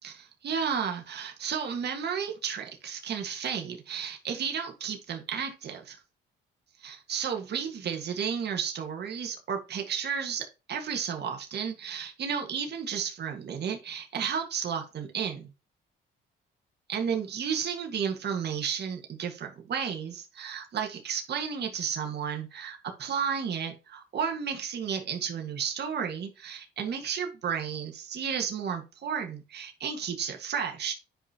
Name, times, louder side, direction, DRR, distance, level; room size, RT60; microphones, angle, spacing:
voice 1, 0.0-6.0 6.8-15.5 16.9-30.9, right 7 dB, 55° right, 1.8 m, -33 dB
10.0 x 5.1 x 2.9 m
cardioid pair, 90°, 20 cm